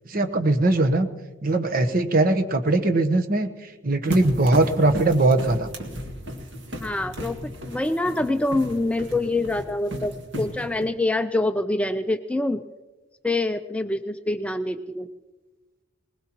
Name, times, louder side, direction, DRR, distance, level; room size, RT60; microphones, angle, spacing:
voice 1, 0.1-1.1 1.4-3.5 3.8-5.7, right 2 dB, 45° right, 7 dB, 1.0 m, -20 dB
sound 1, 4.1-10.9, equal, 65° right, 2.0 m, -35 dB
voice 2, 6.8-12.6 13.2-15.1, left 2 dB, 5° left, 8 dB, 0.4 m, -25 dB
20.5 x 20.5 x 3.0 m, 1.2 s
head